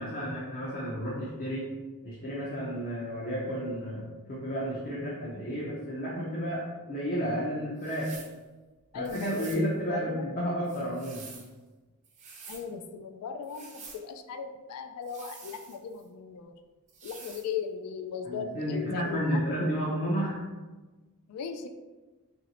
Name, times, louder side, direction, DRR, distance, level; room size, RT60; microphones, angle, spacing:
voice 1, 0.0-1.7 2.0-8.1 8.9-11.3 18.2-20.4, equal, 40° left, -6 dB, 0.5 m, -32 dB
sound 1, 7.8-8.4 9.0-9.7 10.6-11.5 12.0-12.7 13.4-14.0 15.0-16.0 16.9-17.5, right 4 dB, 35° right, 0.5 m, -48 dB
voice 2, 8.9-10.3 12.5-16.6 17.0-19.4 21.3-21.7, left 6 dB, 90° left, 8 dB, 0.3 m, -37 dB
3.0 x 2.6 x 2.8 m, 1.2 s
head